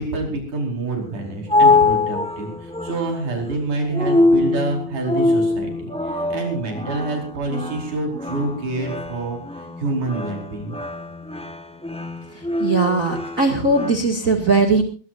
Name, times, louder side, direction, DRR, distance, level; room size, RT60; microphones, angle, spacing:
voice 1, 0.0-10.8, right 2 dB, 75° right, 2 dB, 6.4 m, -27 dB
sound 1, 1.0-13.9, left 3 dB, 10° left, 0.4 m, -23 dB
voice 2, 12.3-14.8, right 3 dB, 30° right, 4 dB, 2.1 m, -19 dB
22.0 x 20.5 x 2.6 m, 0.37 s
omnidirectional pair, 3.5 m